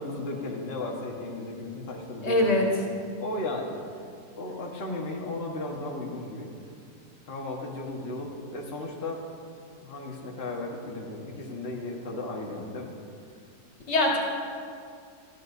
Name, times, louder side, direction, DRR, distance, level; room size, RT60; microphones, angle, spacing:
voice 1, 0.0-2.8 3.2-3.8 4.3-6.5 7.3-9.2 9.8-12.9, left 2 dB, 40° left, -1 dB, 1.6 m, -35 dB
voice 2, 2.2-2.7 13.9-14.2, left 1 dB, 90° left, -3 dB, 2.8 m, -22 dB
19.0 x 14.0 x 2.7 m, 2.3 s
omnidirectional pair, 1.7 m